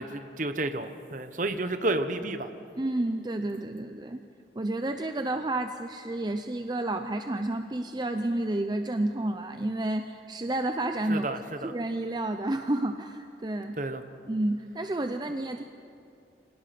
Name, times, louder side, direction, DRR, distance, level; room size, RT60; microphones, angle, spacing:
voice 1, 0.0-2.5 11.1-11.7 13.8-14.0, right 2 dB, 45° right, 9 dB, 1.1 m, -31 dB
voice 2, 2.8-4.2 4.6-11.3 11.6-13.8 14.3-15.6, right 1 dB, 25° right, 7 dB, 0.6 m, -30 dB
25.5 x 18.0 x 6.0 m, 2.6 s
head